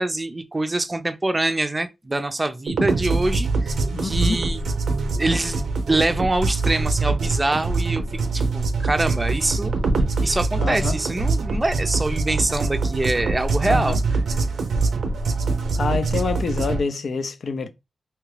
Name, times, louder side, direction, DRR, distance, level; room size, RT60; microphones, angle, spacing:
voice 1, 0.0-3.8 4.0-4.7 5.1-8.0 8.3-9.7 10.2-14.0, right 2 dB, 25° right, 0.4 m, -24 dB
sound 1, 2.7-16.8, right 3 dB, 85° right, 0.5 m, -24 dB
voice 2, 3.9-4.4 10.6-11.0 13.6-14.0 15.7-17.7, left 4 dB, 75° left, 0.5 m, -26 dB
2.8 x 2.4 x 3.2 m
cardioid pair, 55°, 0 cm